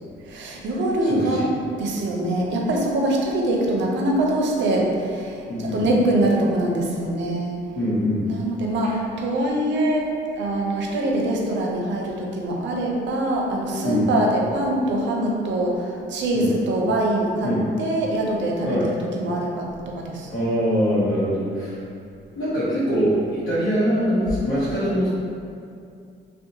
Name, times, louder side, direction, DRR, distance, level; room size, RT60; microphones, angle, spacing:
voice 1, 0.2-1.5 1.8-7.6 8.3-17.5 17.8-18.9 19.2-20.3, right 1 dB, 70° right, -1 dB, 0.5 m, -23 dB
voice 2, 1.0-1.4 5.5-5.8 7.7-8.3 8.8-8.9 13.8-14.1 16.3-16.5 17.4-17.6 18.6-18.9 20.2-21.8 22.4-25.1, equal, 75° left, -12 dB, 0.7 m, -23 dB
2.6 x 2.1 x 2.7 m, 2.4 s
cardioid pair, 90°, 20 cm